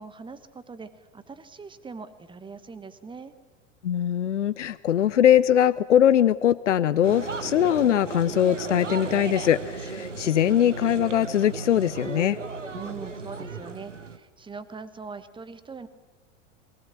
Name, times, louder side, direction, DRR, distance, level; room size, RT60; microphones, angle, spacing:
voice 1, 0.0-3.3 12.7-15.9, right 5 dB, 15° right, 13 dB, 1.2 m, -41 dB
voice 2, 3.8-12.4, left 10 dB, 75° left, 17 dB, 0.6 m, -21 dB
sound 1, 7.0-14.2, right 4 dB, 90° right, 1.1 m, -35 dB
22.0 x 16.5 x 7.6 m, 1.3 s
figure-of-eight pair, 80°, 36 cm